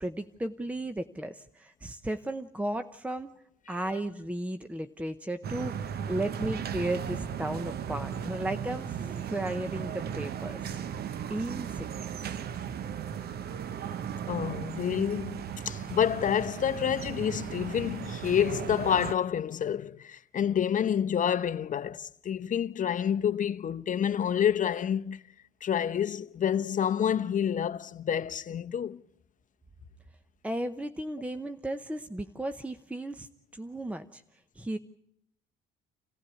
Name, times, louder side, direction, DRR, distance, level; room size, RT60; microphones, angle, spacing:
voice 1, 0.0-3.3 3.7-12.4 30.4-34.2 34.5-34.8, right 1 dB, 5° right, 0.9 m, -35 dB
sound 1, 5.4-19.1, right 8 dB, 50° right, 0.9 m, -36 dB
voice 2, 14.3-25.2 25.6-29.0, left 9 dB, 40° left, 0.8 m, -28 dB
28.0 x 15.0 x 8.5 m
supercardioid pair, 95°, 21 cm